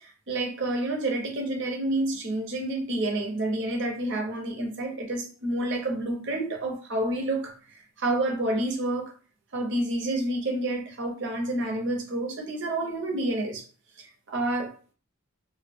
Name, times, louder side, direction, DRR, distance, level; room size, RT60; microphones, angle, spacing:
voice 1, 0.0-7.6 8.0-9.1 9.5-13.6 14.0-14.9, right 1 dB, 55° right, 0.6 m, -29 dB
2.2 x 2.0 x 3.6 m
head